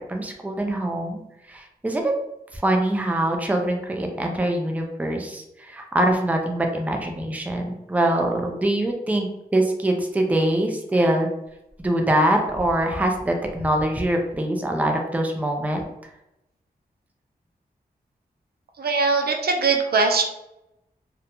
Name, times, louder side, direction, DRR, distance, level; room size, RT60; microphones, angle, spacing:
voice 1, 0.1-1.2 1.5-2.1 2.5-11.3 11.8-15.9, right 1 dB, 10° right, 2 dB, 0.4 m, -23 dB
voice 2, 18.8-20.2, right 4 dB, 70° right, 4 dB, 0.4 m, -21 dB
2.4 x 2.2 x 2.9 m, 0.86 s
wide cardioid pair, 75°, 17 cm